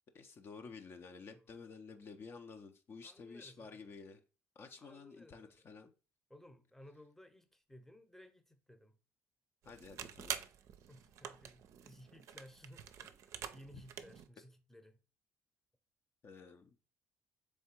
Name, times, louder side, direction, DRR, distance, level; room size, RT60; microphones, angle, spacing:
voice 1, 0.1-4.2 4.6-5.9 9.6-10.4 16.2-16.7, left 5 dB, 45° left, 0.6 m, -52 dB
voice 2, 3.0-3.8 4.8-5.7 6.3-9.0 10.9-15.0, equal, 5° left, 0.7 m, -58 dB
sound 1, 9.6-14.3, right 9 dB, 65° right, 0.4 m, -47 dB
3.5 x 3.3 x 4.4 m
supercardioid pair, 65°, 6 cm